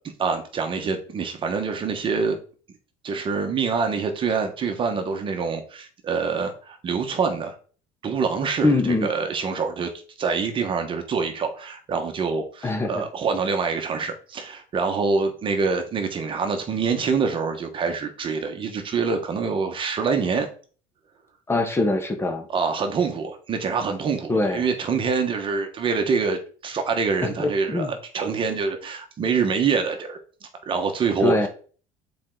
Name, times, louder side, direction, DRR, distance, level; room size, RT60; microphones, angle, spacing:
voice 1, 0.2-2.4 3.0-7.5 8.0-8.7 9.0-9.9 10.2-20.5 22.5-30.2 30.6-31.5, right 5 dB, 40° right, 6 dB, 1.4 m, -25 dB
voice 2, 8.6-9.1 12.6-13.0 21.5-22.5 24.3-24.7 27.4-27.9 31.2-31.5, left 2 dB, 15° left, 5 dB, 1.2 m, -23 dB
7.5 x 4.5 x 3.9 m, 0.41 s
supercardioid pair, 105°, 14 cm